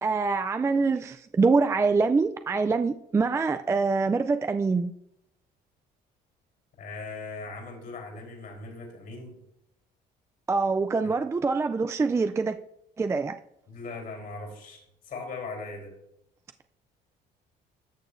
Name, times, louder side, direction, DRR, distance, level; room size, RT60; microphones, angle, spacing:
voice 1, 0.0-4.9 10.5-12.6 13.0-13.3, right 4 dB, 15° right, 0.3 m, -25 dB
voice 2, 6.8-9.4 11.0-11.2 13.7-15.9, left 3 dB, 60° left, 3.6 m, -39 dB
13.0 x 6.7 x 2.6 m
cardioid pair, 110°, 17 cm